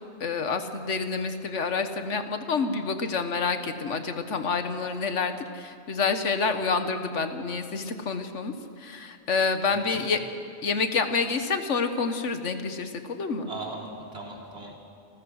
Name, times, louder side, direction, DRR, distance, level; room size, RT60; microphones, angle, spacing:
voice 1, 0.2-8.5 8.8-10.2 10.6-13.5, left 4 dB, 80° left, 8 dB, 1.5 m, -28 dB
voice 2, 9.7-10.1 13.4-14.7, right 3 dB, 60° right, -2 dB, 3.8 m, -39 dB
29.5 x 14.0 x 6.4 m, 2.5 s
omnidirectional pair, 1.2 m